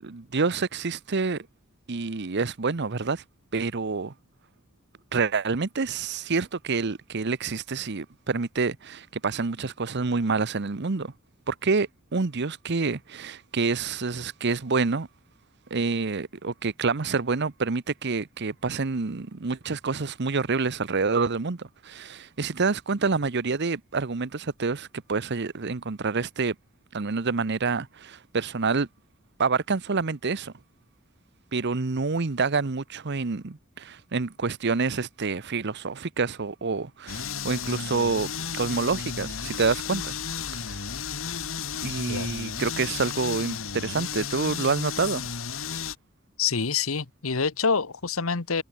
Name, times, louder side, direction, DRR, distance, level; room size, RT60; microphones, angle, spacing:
voice 1, 0.0-1.5 1.9-3.2 3.5-4.1 5.1-11.1 11.5-15.1 15.7-26.6 26.9-28.9 29.4-30.5 31.5-40.2 40.5-40.9 41.8-45.3, right 4 dB, 55° right, 0.9 m, -27 dB
sound 1, 37.1-45.9, left 7 dB, 70° left, 1.6 m, -33 dB
voice 2, 46.4-48.6, left 5 dB, 90° left, 1.3 m, -26 dB
head